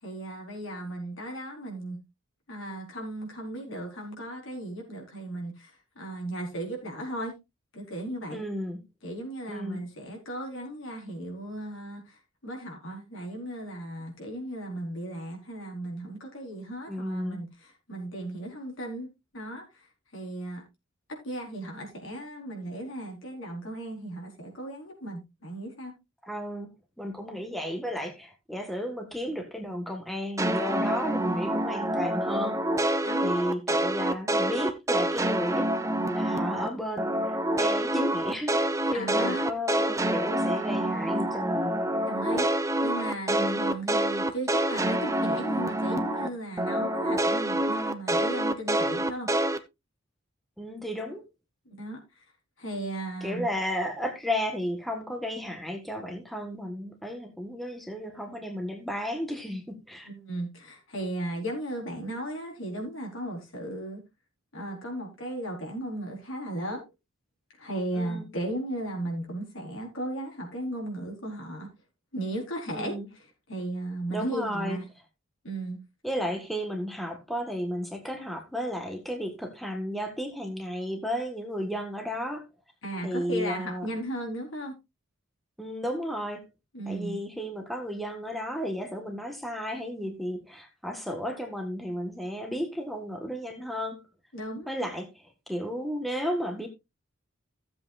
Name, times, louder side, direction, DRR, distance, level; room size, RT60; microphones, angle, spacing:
voice 1, 0.0-2.0 2.5-7.4 7.7-8.4 9.0-17.5 17.9-19.1 19.3-19.6 20.1-20.6 21.2-25.9 33.0-33.3 38.9-39.5 42.1-42.5 42.8-49.3 51.7-52.0 52.6-53.5 60.0-64.0 64.5-66.8 67.6-71.7 72.1-72.9 73.5-74.8 75.4-75.8 82.8-84.7 86.7-87.2 94.3-94.7, right 1 dB, 75° left, 4.5 m, -36 dB
voice 2, 8.3-8.8 9.5-9.8 16.9-17.4 26.2-26.7 27.0-32.8 33.2-41.8 43.3-43.6 50.6-51.2 53.2-60.1 68.0-68.3 72.7-73.1 74.1-74.8 76.0-82.4 83.0-83.9 85.6-86.4 86.8-94.0 94.7-96.7, equal, ahead, 1.5 m, -33 dB
sound 1, 30.4-36.7 37.0-46.3 46.6-49.6, right 1 dB, 15° right, 0.8 m, -27 dB
15.5 x 7.8 x 2.5 m
head